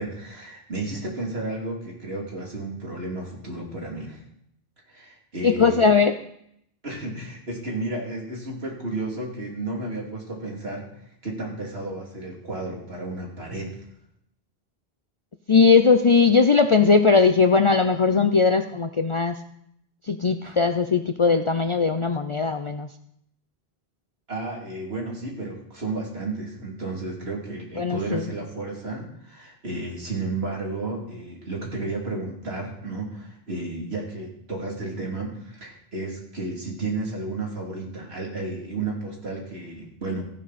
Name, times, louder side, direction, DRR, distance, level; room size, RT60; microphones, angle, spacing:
voice 1, 0.0-4.2 4.9-5.8 6.8-10.9 11.2-13.7 24.3-40.2, right 2 dB, 80° right, -1 dB, 3.2 m, -32 dB
voice 2, 5.4-6.2 15.5-19.4 20.1-22.9 27.8-28.3, left 5 dB, 40° left, 8 dB, 0.5 m, -19 dB
14.5 x 11.0 x 4.2 m, 0.72 s
omnidirectional pair, 1.1 m